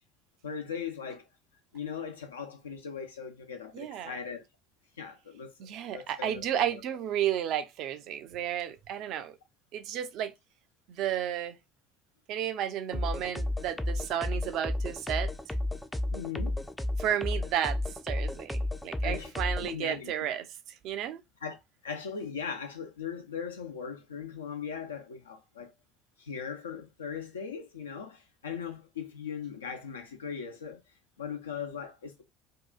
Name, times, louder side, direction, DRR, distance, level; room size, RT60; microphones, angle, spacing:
voice 1, 0.4-1.2 1.7-4.4 5.0-5.7 5.9-6.8 16.1-16.6 19.0-19.3 19.6-20.1 21.4-21.6 21.8-25.7 26.2-30.8 31.2-32.2, left 6 dB, 85° left, 0.5 m, -39 dB
voice 2, 3.7-4.2 5.6-9.4 9.7-10.3 11.0-11.6 12.3-15.3 17.0-17.8 18.0-20.5 20.8-21.2, right 10 dB, 60° right, 0.4 m, -32 dB
sound 1, 12.9-19.7, left 1 dB, 10° left, 0.4 m, -32 dB
2.7 x 2.3 x 2.2 m
hypercardioid pair, 60°, 0 cm